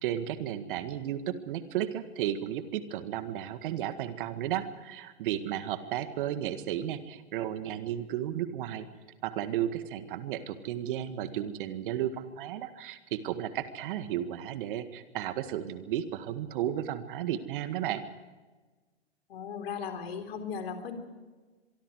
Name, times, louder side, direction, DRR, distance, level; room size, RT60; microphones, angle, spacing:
voice 1, 0.0-8.9 9.2-18.0, right 11 dB, 50° right, 10 dB, 1.9 m, -33 dB
voice 2, 19.3-21.0, left 6 dB, 65° left, 7 dB, 3.9 m, -37 dB
24.5 x 24.0 x 4.8 m, 1.3 s
hypercardioid pair, 115°, 33 cm